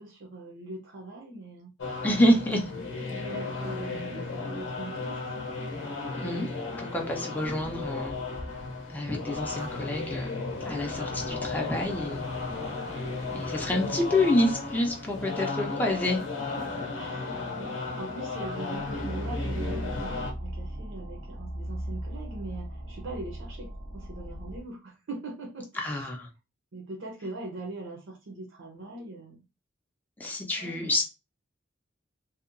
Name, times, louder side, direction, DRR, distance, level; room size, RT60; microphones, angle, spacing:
voice 1, 0.0-1.7 3.1-5.4 16.5-26.1 26.7-29.4 30.6-30.9, right 2 dB, 70° right, 0.6 m, -41 dB
sound 1, 1.8-20.3, left 3 dB, 70° left, 0.6 m, -35 dB
voice 2, 2.0-2.7 6.1-6.5 6.8-8.2 8.9-12.2 13.3-16.2 25.8-26.3 30.2-31.0, left 1 dB, 10° left, 0.4 m, -27 dB
sound 2, 10.5-16.1, left 1 dB, 35° left, 0.7 m, -46 dB
sound 3, 18.7-24.6, right 1 dB, 90° right, 1.1 m, -37 dB
2.7 x 2.1 x 2.5 m
head